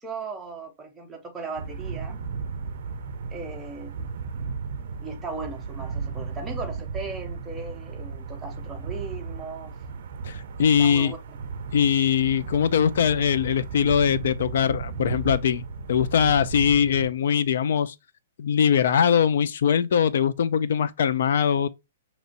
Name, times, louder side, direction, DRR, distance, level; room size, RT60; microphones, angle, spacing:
voice 1, 0.0-2.2 3.3-3.9 5.0-9.7 10.8-11.4, right 4 dB, 10° right, 0.7 m, -37 dB
sound 1, 1.6-17.1, right 4 dB, 55° right, 0.5 m, -35 dB
voice 2, 10.2-11.1 11.7-17.9 18.4-21.7, left 8 dB, 60° left, 0.4 m, -22 dB
5.4 x 3.0 x 2.5 m
hypercardioid pair, 170°, 0 cm